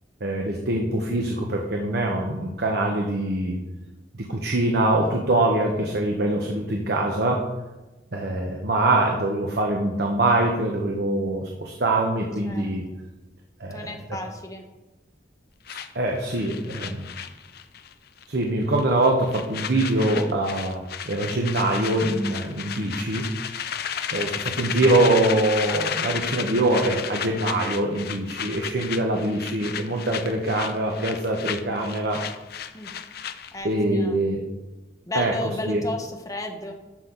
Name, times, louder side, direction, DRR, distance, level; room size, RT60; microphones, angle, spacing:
voice 1, 0.2-3.6 4.1-7.4 8.1-12.9 13.6-14.2 15.7-17.1 18.3-23.3 24.1-32.2 33.6-34.4 35.1-35.8, right 2 dB, 65° right, 1 dB, 1.1 m, -24 dB
voice 2, 12.4-13.0 13.7-14.6 32.7-32.9 33.5-34.2 35.1-36.7, left 1 dB, 20° left, 3 dB, 1.2 m, -34 dB
sound 1, 15.7-17.9 18.2-18.4 18.7-33.6, left 8 dB, 60° left, 0.6 m, -33 dB
12.0 x 6.4 x 4.0 m, 1.1 s
head